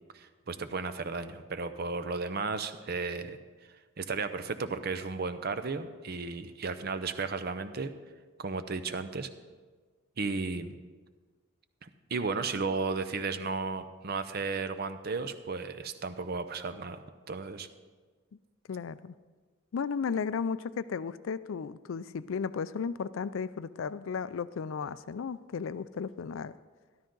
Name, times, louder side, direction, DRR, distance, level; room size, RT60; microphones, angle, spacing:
voice 1, 0.1-3.4 4.0-7.9 8.4-9.3 10.2-10.8 11.8-17.0 17.3-17.7, right 4 dB, 50° right, 10 dB, 0.6 m, -34 dB
voice 2, 18.7-19.2 19.7-26.5, left 6 dB, 80° left, 16 dB, 0.4 m, -34 dB
13.0 x 12.5 x 3.8 m, 1.4 s
head